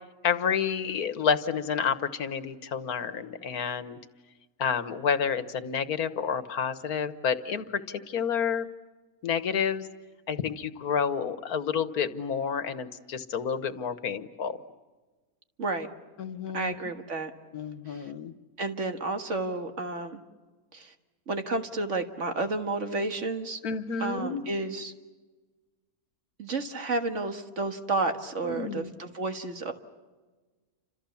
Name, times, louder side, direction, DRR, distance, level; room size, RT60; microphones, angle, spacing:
voice 1, 0.2-4.0 4.6-8.7 9.2-9.9 10.3-14.6 16.2-16.7 17.5-18.3 23.6-24.4 28.4-28.9, left 7 dB, 90° left, 12 dB, 1.7 m, -29 dB
voice 2, 16.5-17.3 17.9-18.1 18.6-20.2 20.7-20.9 21.3-23.6 24.0-24.9 26.4-29.7, right 3 dB, 55° right, 6 dB, 2.0 m, -31 dB
30.0 x 26.5 x 7.1 m, 1.3 s
omnidirectional pair, 1.5 m